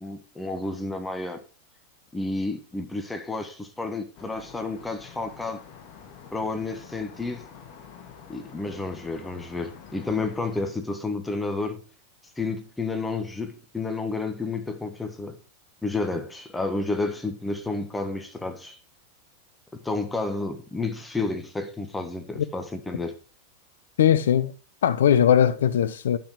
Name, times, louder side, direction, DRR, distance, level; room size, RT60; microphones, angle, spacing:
voice 1, 0.0-1.4 2.1-5.6 6.3-7.4 8.3-11.8 12.4-15.4 15.8-18.8 19.7-23.2, left 3 dB, 10° left, 1.4 m, -31 dB
sound 1, 4.1-10.7, left 7 dB, 40° left, 2.1 m, -47 dB
voice 2, 24.0-24.5 24.8-26.2, left 9 dB, 60° left, 0.7 m, -19 dB
10.5 x 6.2 x 4.8 m
figure-of-eight pair, 90°, 0 cm